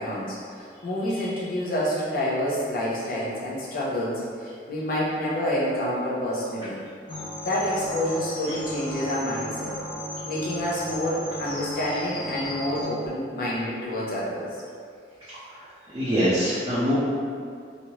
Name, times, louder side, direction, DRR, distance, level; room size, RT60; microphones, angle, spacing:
voice 1, 0.0-6.8 7.4-9.7 10.2-14.6, left 1 dB, 50° left, -7 dB, 0.8 m, -28 dB
sound 1, 7.1-12.8, equal, 30° left, 0.5 m, -35 dB
voice 2, 15.9-16.9, equal, 25° right, -12 dB, 0.6 m, -23 dB
3.1 x 2.7 x 2.9 m, 2.3 s
head